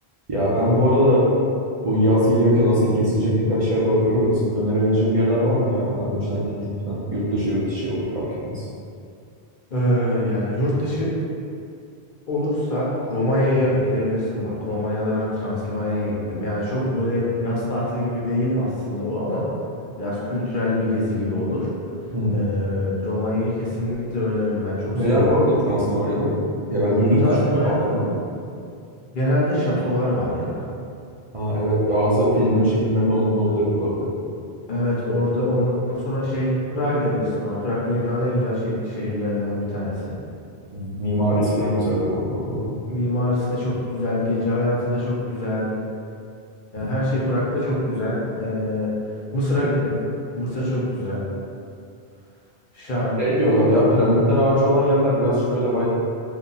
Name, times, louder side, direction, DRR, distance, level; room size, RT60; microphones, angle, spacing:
voice 1, 0.3-1.3 1.8-6.5 6.9-8.7 22.1-22.4 24.9-26.3 26.7-27.3 27.6-28.1 31.3-34.1 40.7-42.7 46.8-46.9 53.2-55.8, equal, 40° right, -9 dB, 0.5 m, -20 dB
voice 2, 9.7-11.2 12.3-19.5 20.0-21.7 22.3-25.3 27.2-27.9 29.1-30.6 34.7-40.2 42.9-45.8 46.7-48.9 49.3-50.0 50.4-51.3 52.7-53.2, left 1 dB, 55° left, -6 dB, 0.9 m, -24 dB
2.8 x 2.7 x 3.8 m, 2.4 s
omnidirectional pair, 1.0 m